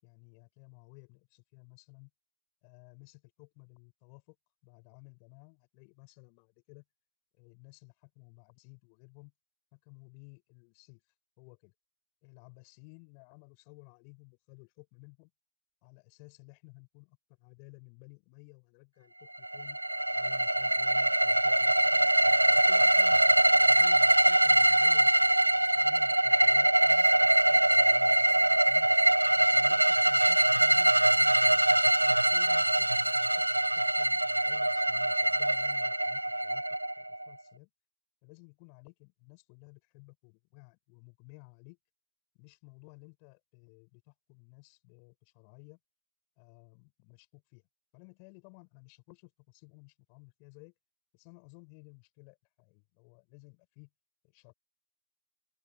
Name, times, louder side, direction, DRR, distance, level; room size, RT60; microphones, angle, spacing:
voice 1, 0.0-2.1 2.6-4.4 4.6-6.8 7.4-9.3 9.7-11.0 11.4-11.7 12.2-15.3 15.8-19.8 20.1-22.0 22.5-23.2 23.5-27.1 27.5-28.9 29.4-33.3 33.8-36.6 37.0-37.7 38.2-41.8 42.3-45.8 46.4-47.6 47.9-50.7 51.1-53.9 54.2-54.5, left 40 dB or more, 25° left, 7.4 m, -56 dB
sound 1, 19.4-37.3, right 1 dB, 85° right, 0.6 m, -24 dB
open air
figure-of-eight pair, 130°, 0 cm